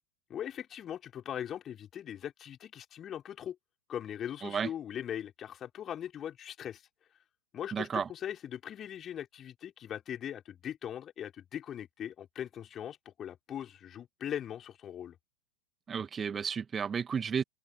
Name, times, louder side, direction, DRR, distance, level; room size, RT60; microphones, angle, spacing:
voice 1, 0.3-3.6 3.9-6.8 7.5-15.2, left 10 dB, 25° left, 3.8 m, -40 dB
voice 2, 7.7-8.1 15.9-17.4, right 6 dB, 20° right, 2.1 m, -32 dB
figure-of-eight pair, 90°, 0 cm